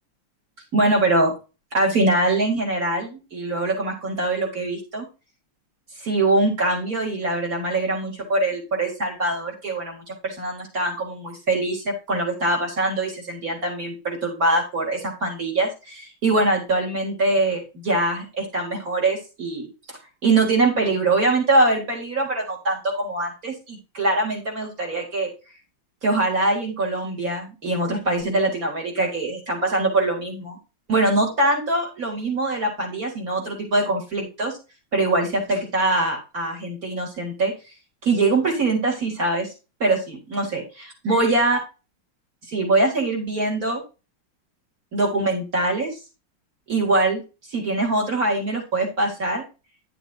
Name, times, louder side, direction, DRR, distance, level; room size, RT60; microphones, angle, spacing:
voice 1, 0.7-1.3 1.7-5.1 6.0-10.0 10.2-25.3 26.0-30.6 30.9-34.5 34.9-37.5 38.0-39.5 39.8-41.6 42.5-43.8 44.9-46.0 46.7-47.2 47.5-49.4, right 2 dB, 40° right, 0 dB, 4.3 m, -23 dB
12.0 x 7.1 x 2.8 m, 0.30 s
omnidirectional pair, 2.4 m